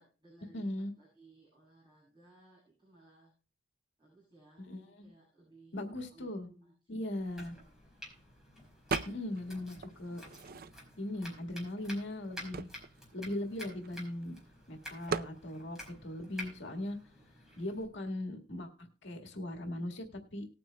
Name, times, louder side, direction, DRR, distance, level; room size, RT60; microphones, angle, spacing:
voice 1, 0.0-3.3 4.0-7.1, right 2 dB, 25° right, -6 dB, 7.1 m, -61 dB
voice 2, 0.5-0.9 4.6-5.1 5.7-6.5 6.9-7.6 9.1-10.2 11.0-12.7 13.1-14.4 14.7-17.0 17.6-20.5, left 1 dB, 80° left, 3 dB, 1.8 m, -39 dB
Domestic sounds home sounds, 7.2-17.8, left 1 dB, 5° right, 4.7 m, -50 dB
sound 1, 8.9-9.5 9.8-11.1 11.7-11.8 12.0-14.2 15.1-15.4, right 5 dB, 55° right, 0.4 m, -38 dB
19.0 x 9.3 x 2.2 m, 0.37 s
head